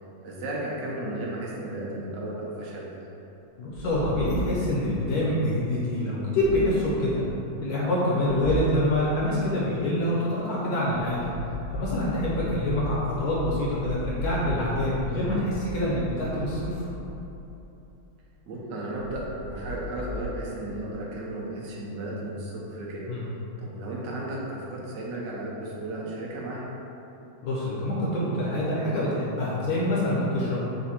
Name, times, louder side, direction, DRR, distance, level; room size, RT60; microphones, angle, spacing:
voice 1, 0.2-2.9 14.3-14.5 15.3-15.5 18.5-23.1 23.6-26.7, right 1 dB, 75° right, -4 dB, 1.3 m, -34 dB
voice 2, 3.6-7.2 7.6-11.3 11.7-16.9 23.1-23.2 27.4-30.7, left 1 dB, 65° left, -6 dB, 1.0 m, -26 dB
sound 1, 3.7-4.9 6.4-7.0 8.2-8.9 10.8-17.6 18.9-20.3, equal, 85° left, 1.4 m, -36 dB
4.1 x 2.5 x 4.2 m, 3.0 s
omnidirectional pair, 2.1 m